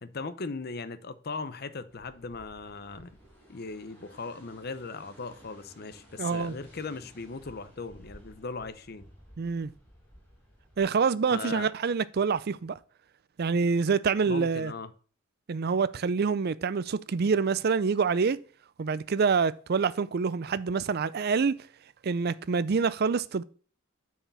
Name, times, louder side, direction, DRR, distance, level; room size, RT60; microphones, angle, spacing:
voice 1, 0.0-3.1 3.5-9.1 11.3-11.7 14.2-14.9, left 4 dB, 45° left, 0.7 m, -38 dB
sound 1, 1.9-10.8, equal, 10° left, 2.8 m, -55 dB
voice 2, 6.2-6.6 9.4-9.7 10.8-12.8 13.4-14.7 15.5-18.4 18.8-21.6 22.0-23.4, right 5 dB, 45° right, 0.4 m, -26 dB
8.9 x 4.8 x 5.4 m
head